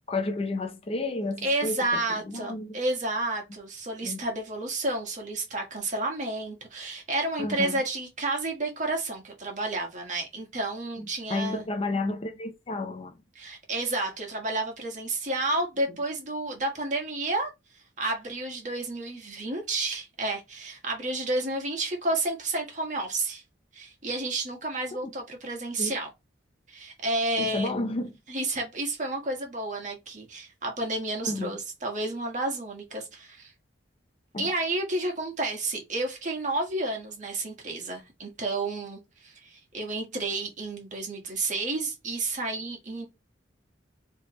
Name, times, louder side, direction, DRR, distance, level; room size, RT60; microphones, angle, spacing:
voice 1, 0.1-1.9 2.3-2.8 4.0-4.2 7.4-7.8 11.0-13.2 25.8-25.9 27.4-28.2 31.2-31.6 34.3-34.5, left 2 dB, 30° left, 0.5 m, -31 dB
voice 2, 1.4-11.6 13.3-17.5 18.0-23.4 23.7-26.1 26.7-27.7 28.3-33.5 34.4-43.1, right 2 dB, 45° right, 1.5 m, -31 dB
4.7 x 3.4 x 3.0 m
head